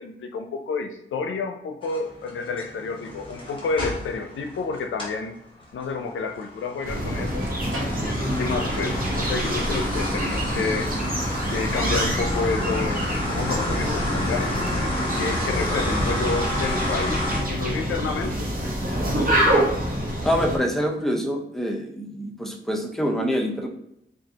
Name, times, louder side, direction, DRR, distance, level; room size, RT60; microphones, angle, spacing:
voice 1, 0.0-5.3 5.7-7.4 8.0-10.9 11.5-13.0 13.3-17.2 17.5-18.5 19.0-19.7, left 4 dB, 85° left, 5 dB, 0.5 m, -30 dB
sound 1, 1.8-5.2 5.6-17.4, left 1 dB, 25° left, 1.3 m, -31 dB
sound 2, 6.8-20.6, equal, 45° right, 1.0 m, -26 dB
sound 3, 6.8-12.1, right 1 dB, 85° right, 1.1 m, -42 dB
voice 2, 20.2-23.7, equal, ahead, 2 dB, 0.6 m, -25 dB
4.9 x 2.4 x 2.8 m, 0.78 s
wide cardioid pair, 80°, 20 cm